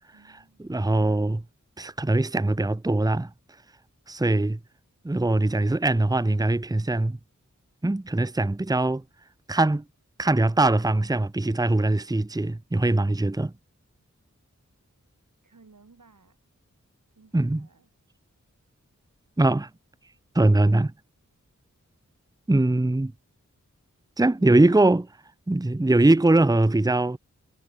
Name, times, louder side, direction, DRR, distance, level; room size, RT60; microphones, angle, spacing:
voice 1, 0.1-0.8 15.4-16.4 17.2-17.9, right 4 dB, 75° right, 6.2 m, -57 dB
voice 2, 0.7-1.4 1.8-3.3 4.1-4.6 5.0-7.2 7.8-9.0 9.5-9.8 10.2-13.5 17.3-17.7 19.4-19.7 20.3-20.9 22.5-23.1 24.2-25.1 25.5-27.2, right 2 dB, 10° right, 0.8 m, -22 dB
cardioid pair, 40°, 31 cm